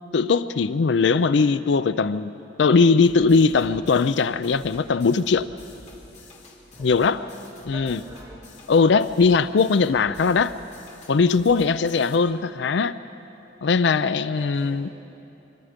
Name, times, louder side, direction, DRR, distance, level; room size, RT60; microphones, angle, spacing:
voice 1, 0.1-2.3 2.6-5.5 6.8-7.2 7.7-8.0 8.7-10.5 11.1-12.9 13.6-14.9, left 4 dB, 70° left, 0.4 m, -20 dB
sound 1, 3.0-12.2, left 2 dB, 40° left, 2.6 m, -48 dB
voice 2, 6.7-8.5 11.7-12.0 14.3-14.9, equal, 15° right, 7.4 m, -44 dB
26.0 x 24.0 x 5.1 m
head